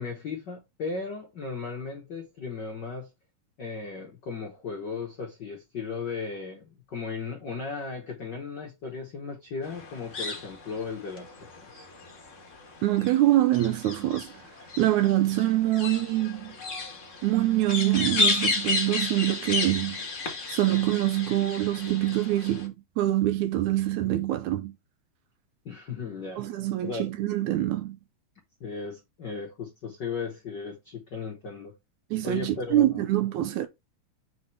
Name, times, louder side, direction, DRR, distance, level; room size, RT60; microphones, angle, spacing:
voice 1, 0.0-3.1 3.6-11.3 11.6-11.9 25.6-26.5 26.8-27.1 28.6-31.7 32.2-33.1, left 4 dB, 70° left, 1.0 m, -36 dB
sound 1, 9.6-22.7, left 3 dB, 45° left, 0.9 m, -33 dB
voice 2, 12.8-14.3 14.8-16.6 17.2-20.0 20.5-24.7 26.4-28.0 32.1-33.7, right 14 dB, 75° right, 1.9 m, -25 dB
7.1 x 4.2 x 3.2 m
omnidirectional pair, 3.7 m